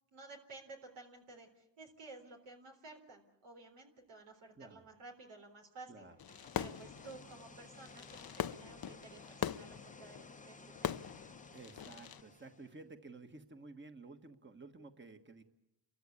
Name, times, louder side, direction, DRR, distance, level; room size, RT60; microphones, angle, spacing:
voice 1, 0.1-6.1 6.6-11.1, right 3 dB, 85° right, 2 dB, 3.9 m, -54 dB
voice 2, 4.5-4.9 5.9-6.2 11.5-15.4, right 3 dB, 20° right, 6 dB, 1.6 m, -53 dB
sound 1, 6.1-12.9, left 3 dB, 15° left, 0.9 m, -56 dB
Fireworks, 6.2-12.2, left 9 dB, 45° left, 0.7 m, -42 dB
29.5 x 14.0 x 8.4 m, 0.97 s
cardioid pair, 60°, 49 cm